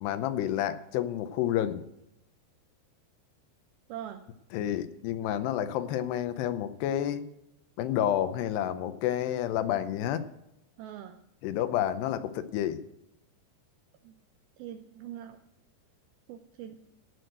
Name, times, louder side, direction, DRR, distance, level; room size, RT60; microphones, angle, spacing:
voice 1, 0.0-1.8 4.5-7.2 7.8-10.2 11.4-12.8, left 11 dB, 80° left, 12 dB, 2.6 m, -29 dB
voice 2, 3.9-4.2 10.8-11.2 14.0-14.1 14.6-15.4 16.3-16.8, right 10 dB, 80° right, 7 dB, 2.2 m, -42 dB
17.0 x 6.3 x 7.9 m, 0.83 s
omnidirectional pair, 5.3 m